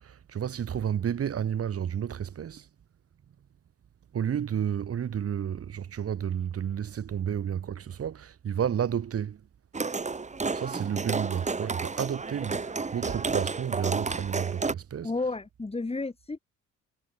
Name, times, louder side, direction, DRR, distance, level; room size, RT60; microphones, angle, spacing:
voice 1, 0.0-2.7 4.1-9.4 10.5-15.1, right 8 dB, 50° right, 1.7 m, -31 dB
sound 1, 9.7-14.7, right 4 dB, 25° right, 2.0 m, -31 dB
voice 2, 15.0-16.4, left 3 dB, 20° left, 4.1 m, -32 dB
cardioid pair, 90°, 30 cm